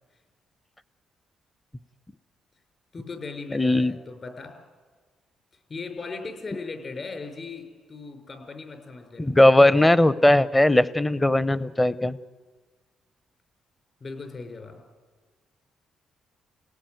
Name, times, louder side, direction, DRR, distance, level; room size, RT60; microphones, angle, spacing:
voice 1, 2.9-4.5 5.7-9.4 14.0-14.8, left 4 dB, 40° left, 5 dB, 5.5 m, -38 dB
voice 2, 3.5-3.9 9.2-12.2, left 1 dB, 15° left, 17 dB, 0.8 m, -18 dB
29.5 x 18.0 x 9.3 m, 1.5 s
cardioid pair, 90°, 0 cm